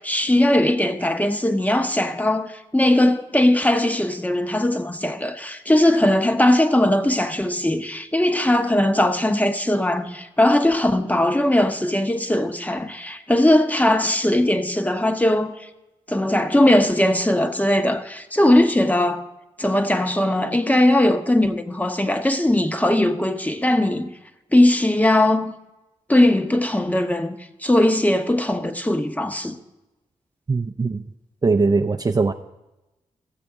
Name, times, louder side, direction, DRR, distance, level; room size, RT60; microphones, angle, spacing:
voice 1, 0.0-15.7 16.1-19.3 19.6-24.1 24.5-25.5 26.1-27.4 27.6-29.6, left 1 dB, 10° left, 0.8 m, -19 dB
voice 2, 30.5-31.0 31.4-32.3, right 3 dB, 30° right, 0.4 m, -20 dB
13.5 x 7.6 x 3.6 m
cardioid pair, 50°, 13 cm